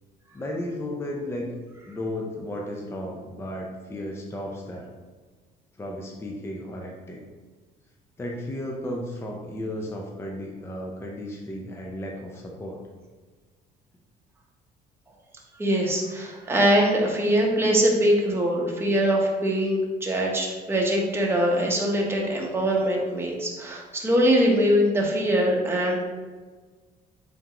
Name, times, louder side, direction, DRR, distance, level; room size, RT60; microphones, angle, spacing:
voice 1, 0.3-1.5 1.9-4.9 5.8-7.2 8.2-12.8, left 1 dB, 15° left, -1 dB, 0.5 m, -34 dB
voice 2, 15.6-26.0, equal, 15° right, -2 dB, 0.8 m, -22 dB
3.6 x 3.5 x 2.9 m, 1.4 s
cardioid pair, 110°, 17 cm